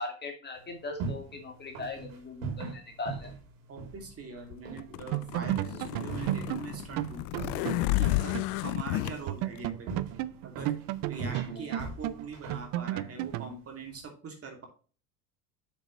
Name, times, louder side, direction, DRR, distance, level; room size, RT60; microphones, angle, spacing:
voice 1, 0.0-3.3 11.5-11.9, left 2 dB, 25° left, 3 dB, 2.3 m, -39 dB
Walking (Footsteps), 0.6-14.0, right 5 dB, 85° right, 3.2 m, -42 dB
voice 2, 3.7-7.3 7.5-9.9 10.4-10.7 11.1-14.6, right 4 dB, 35° right, 2 dB, 2.7 m, -43 dB
Zip Pull - Close Mic, 4.5-9.1, left 20 dB, 65° left, 0.5 m, -31 dB
sound 1, 4.7-4.8 5.1-8.6 8.8-8.9 9.3-13.5, right 15 dB, 60° right, 0.6 m, -34 dB
7.5 x 6.6 x 3.2 m, 0.37 s
supercardioid pair, 110°, 40 cm